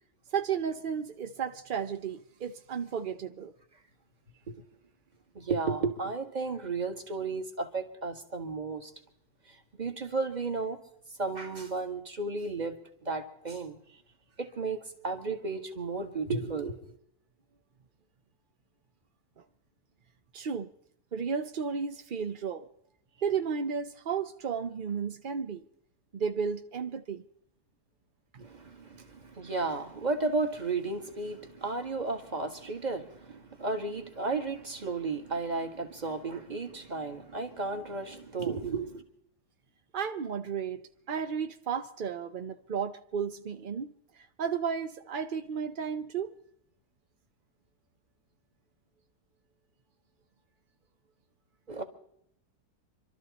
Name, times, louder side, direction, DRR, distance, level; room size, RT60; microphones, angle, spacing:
voice 1, 0.3-3.5 20.3-20.7 21.1-22.7 23.2-25.6 26.1-27.2 39.9-43.9 44.4-46.3, right 6 dB, 55° right, 0.5 m, -33 dB
voice 2, 5.3-8.9 9.5-10.8 11.2-12.7 13.0-13.8 14.4-16.8 28.4-39.0 51.7-51.8, right 3 dB, 25° right, 1.6 m, -33 dB
26.0 x 13.0 x 4.1 m
omnidirectional pair, 1.8 m